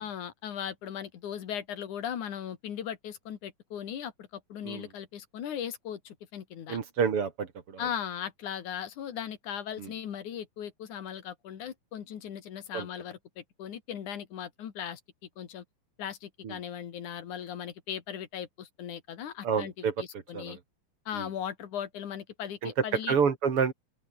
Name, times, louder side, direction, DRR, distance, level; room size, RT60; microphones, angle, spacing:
voice 1, 0.0-6.8 7.8-15.0 15.4-15.6 16.0-19.7 20.0-20.6 21.1-23.2, left 9 dB, 80° left, 3.5 m, -38 dB
voice 2, 6.7-7.9 9.8-9.9 12.7-12.9 16.4-16.6 19.4-19.9 20.3-20.6 21.1-21.3 22.6-22.7 23.1-23.7, right 6 dB, 50° right, 2.8 m, -29 dB
open air
omnidirectional pair, 3.4 m